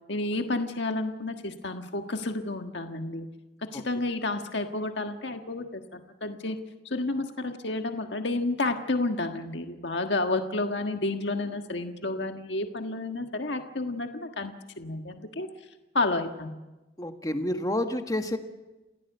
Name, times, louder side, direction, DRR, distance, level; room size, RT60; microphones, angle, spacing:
voice 1, 0.1-3.3 3.7-6.6 6.8-15.5 15.9-16.5, left 2 dB, 75° left, 5 dB, 1.5 m, -30 dB
voice 2, 17.0-18.4, left 1 dB, 20° left, 6 dB, 1.6 m, -29 dB
28.5 x 16.5 x 8.1 m, 1.1 s
head